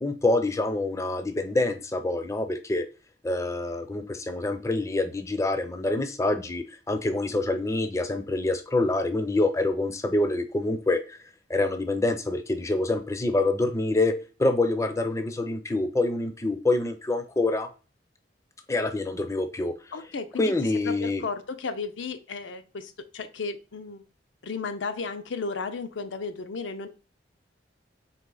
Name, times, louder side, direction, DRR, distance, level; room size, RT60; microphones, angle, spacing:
voice 1, 0.0-2.8 3.2-11.2 11.5-14.1 14.4-17.7 18.7-19.7 20.4-21.2, left 2 dB, 15° left, 8 dB, 0.4 m, -26 dB
voice 2, 19.9-20.5 20.8-24.0 24.4-26.9, left 4 dB, 80° left, 9 dB, 0.6 m, -34 dB
4.1 x 3.3 x 3.8 m, 0.34 s
head